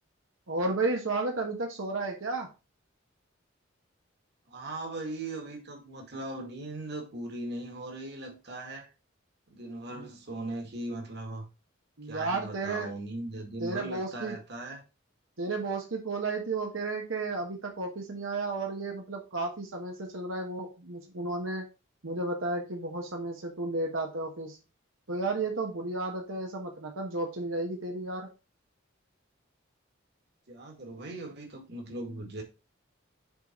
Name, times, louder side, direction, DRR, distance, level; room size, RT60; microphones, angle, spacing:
voice 1, 0.5-2.5 10.0-10.1 12.0-12.9 13.6-14.4 15.4-21.6 22.0-24.6 25.1-28.3, right 3 dB, 90° right, 1.3 m, -33 dB
voice 2, 4.5-8.9 9.5-11.5 12.0-14.8 30.5-32.4, right 2 dB, 55° right, 1.9 m, -39 dB
6.8 x 4.1 x 4.4 m
head